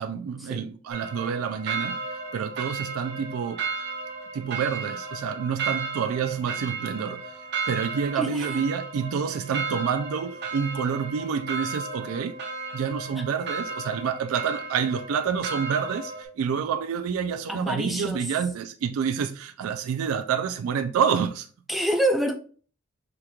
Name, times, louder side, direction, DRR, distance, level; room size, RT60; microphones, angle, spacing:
voice 1, 0.0-2.0 2.3-3.6 4.3-7.3 7.7-12.3 12.7-21.5, right 7 dB, 85° right, 0.3 m, -28 dB
sound 1, 0.9-16.2, right 4 dB, 50° right, 0.7 m, -34 dB
voice 2, 8.2-8.6 13.2-13.3 17.5-18.3 21.7-22.3, right 1 dB, ahead, 0.4 m, -27 dB
4.9 x 3.0 x 2.3 m
head